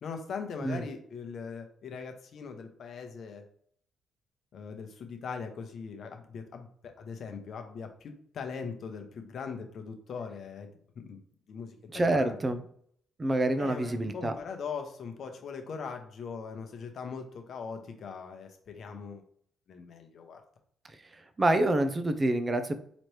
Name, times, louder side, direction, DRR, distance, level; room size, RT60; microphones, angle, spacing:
voice 1, 0.0-3.4 4.5-10.8 11.0-11.2 11.5-12.4 13.6-19.2 19.7-20.4, left 5 dB, 60° left, 5 dB, 0.8 m, -40 dB
voice 2, 11.9-12.6 13.2-14.3 21.4-22.7, right 1 dB, 25° right, 9 dB, 0.6 m, -27 dB
4.1 x 3.0 x 3.2 m, 0.63 s
cardioid pair, 90°, 0 cm